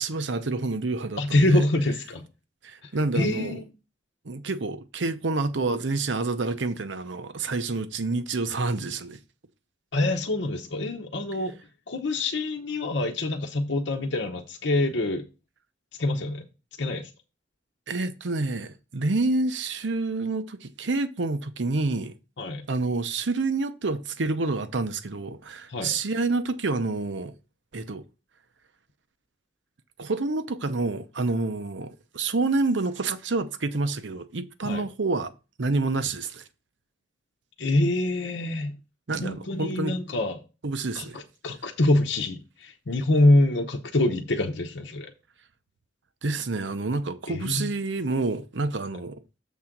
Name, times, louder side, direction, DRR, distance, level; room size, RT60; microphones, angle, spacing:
voice 1, 0.0-1.6 2.6-3.6 4.2-9.2 17.9-22.1 22.7-27.3 27.7-28.0 30.0-35.3 35.6-36.4 39.1-40.0 40.6-41.2 46.2-49.2, right 3 dB, 75° right, 0.8 m, -28 dB
voice 2, 1.2-2.2 2.8-3.6 9.9-11.5 11.9-15.2 16.0-16.5 16.8-17.1 22.4-22.7 25.7-25.9 34.6-34.8 37.6-38.7 39.2-40.4 40.9-45.1 47.3-47.7, left 2 dB, 75° left, 0.8 m, -25 dB
7.4 x 3.7 x 5.9 m
head